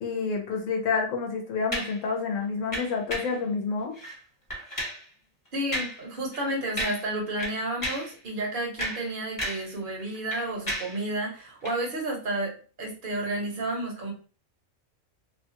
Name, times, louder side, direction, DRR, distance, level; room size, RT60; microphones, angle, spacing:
voice 1, 0.0-3.9, left 5 dB, 70° left, 2 dB, 0.9 m, -29 dB
sound 1, 1.7-2.0 2.7-3.4 3.9-4.2 4.5-5.0 5.7-6.0 6.3-6.5 6.8-7.1 7.4-8.1 8.6-9.7 10.0-11.0 11.6-11.8, equal, 15° left, 1.0 m, -33 dB
voice 2, 5.5-12.5 12.8-14.1, right 1 dB, 40° right, -1 dB, 1.0 m, -31 dB
2.7 x 2.2 x 2.8 m, 0.37 s
omnidirectional pair, 1.5 m